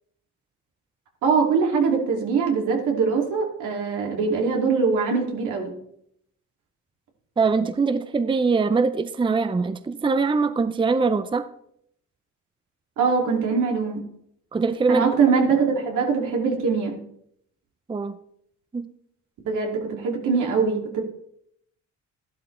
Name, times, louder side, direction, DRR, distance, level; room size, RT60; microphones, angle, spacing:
voice 1, 1.2-5.7 13.0-14.0 14.9-17.0 19.5-21.0, right 5 dB, 80° right, 1 dB, 2.7 m, -22 dB
voice 2, 7.4-11.5 14.5-15.1 17.9-18.2 18.7-18.9, right 4 dB, 15° right, 12 dB, 0.6 m, -22 dB
12.0 x 11.5 x 3.3 m, 0.71 s
cardioid pair, 90°, 30 cm